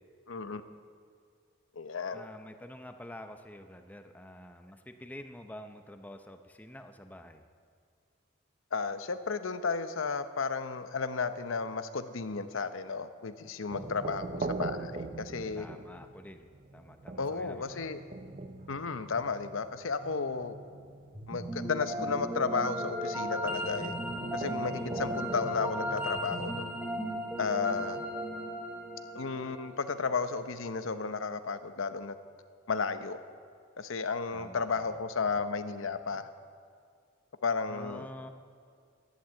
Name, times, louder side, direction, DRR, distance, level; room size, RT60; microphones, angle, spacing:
voice 1, 0.3-0.6 1.8-2.2 8.7-15.7 17.2-18.0 18.7-20.6 21.3-23.9 24.3-26.7 27.4-28.0 29.1-32.2 32.7-33.2 33.8-36.3 37.4-38.1, left 4 dB, 80° left, 11 dB, 0.8 m, -33 dB
voice 2, 2.1-7.4 13.7-14.0 15.6-16.5 16.7-17.9 24.7-25.0 27.7-28.1 34.3-35.0 35.3-35.4 37.7-38.3, left 1 dB, 10° left, 7 dB, 0.7 m, -48 dB
sound 1, 13.7-26.6, right 3 dB, 40° right, 0.6 m, -43 dB
sound 2, 21.1-30.3, equal, 10° right, 1.1 m, -36 dB
11.5 x 11.5 x 7.7 m, 2.2 s
head